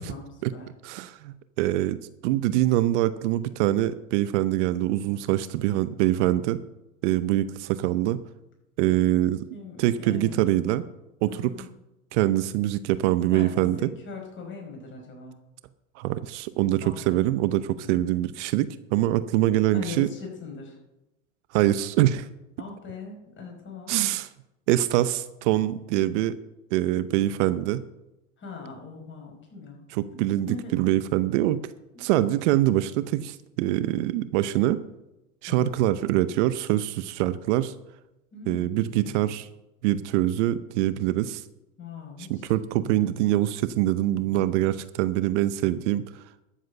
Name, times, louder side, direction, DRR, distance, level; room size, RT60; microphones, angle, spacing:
voice 1, 0.0-0.7 9.5-10.4 11.3-11.7 13.3-15.4 16.8-17.2 17.8-18.1 19.7-20.8 22.6-24.0 28.4-29.8 30.1-30.8 31.9-32.1 35.5-35.7 38.3-39.2 41.8-42.5, left 4 dB, 30° left, 1 dB, 5.1 m, -40 dB
voice 2, 0.8-6.6 7.0-8.2 8.8-9.5 9.8-10.8 11.2-11.5 12.1-13.9 16.0-20.1 21.5-22.3 23.9-24.3 24.7-26.4 26.7-27.8 29.9-30.5 30.7-31.6 32.0-34.8 35.4-37.7 38.5-39.5 39.8-41.4 42.3-46.2, right 14 dB, 60° right, 14 dB, 0.8 m, -24 dB
12.5 x 7.6 x 6.7 m, 0.93 s
hypercardioid pair, 100°, 40 cm